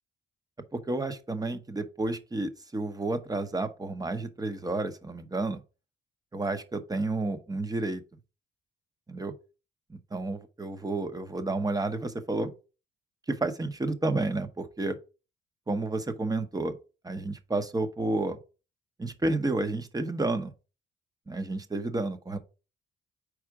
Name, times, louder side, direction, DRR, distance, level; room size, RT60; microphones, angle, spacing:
voice 1, 0.7-5.6 6.3-8.0 9.1-9.3 9.9-12.5 13.3-15.0 15.7-16.7 17.0-18.4 19.0-20.5 21.3-22.4, right 2 dB, 20° right, 0.9 m, -31 dB
4.8 x 4.2 x 4.8 m
cardioid pair, 90°, 20 cm